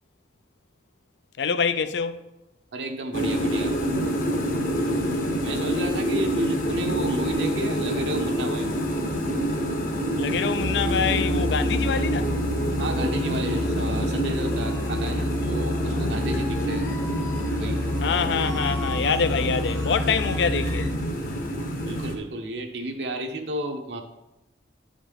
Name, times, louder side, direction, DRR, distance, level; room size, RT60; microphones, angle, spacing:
voice 1, 1.4-2.2 10.2-12.3 18.0-20.9, left 6 dB, 75° left, 0.4 m, -25 dB
voice 2, 2.7-3.7 4.9-5.0 5.4-8.7 12.8-16.9 17.5-17.8 21.8-24.0, right 1 dB, 75° right, 0.8 m, -32 dB
sound 1, 3.1-22.2, equal, 50° left, 0.9 m, -27 dB
sound 2, 10.6-20.9, left 1 dB, 15° left, 0.7 m, -30 dB
9.8 x 5.1 x 3.5 m
head